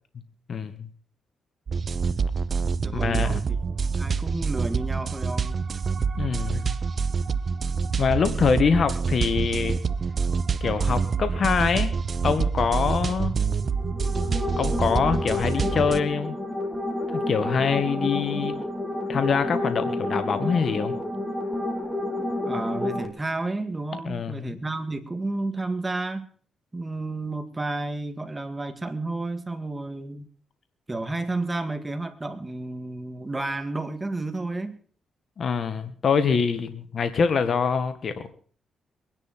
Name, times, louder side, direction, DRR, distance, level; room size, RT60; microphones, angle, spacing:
voice 1, 0.5-0.9 2.9-3.4 6.2-6.8 8.0-9.8 10.6-11.9 12.2-13.4 14.6-16.3 17.1-18.5 19.1-21.0 24.0-24.6 35.4-38.3, left 6 dB, 55° left, 10 dB, 1.6 m, -24 dB
sound 1, 1.7-16.0, right 5 dB, 45° right, 0.7 m, -26 dB
voice 2, 2.8-3.4 4.0-5.7 6.5-6.6 22.4-26.3 26.7-30.3 30.9-34.8, right 2 dB, 20° right, 9 dB, 2.2 m, -31 dB
sound 2, 13.6-23.1, left 1 dB, ahead, 3.0 m, -29 dB
22.5 x 10.5 x 4.4 m, 0.43 s
cardioid pair, 80°, 0 cm